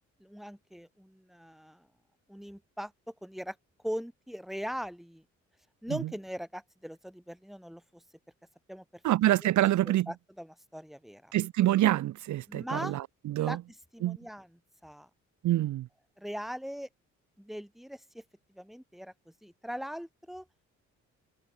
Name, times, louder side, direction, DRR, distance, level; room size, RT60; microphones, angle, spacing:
voice 1, 0.0-1.9 2.3-3.6 3.8-5.2 5.8-8.0 8.7-8.8 9.4-9.5 9.8-11.3 12.5-13.0 13.4-15.1 16.2-16.9 17.4-18.2 18.5-20.5, equal, ahead, 4.2 m, -40 dB
voice 2, 9.0-10.1 11.3-13.6 14.0-14.2 15.4-15.9, right 14 dB, 70° right, 0.9 m, -26 dB
cardioid pair, 90°, 30 cm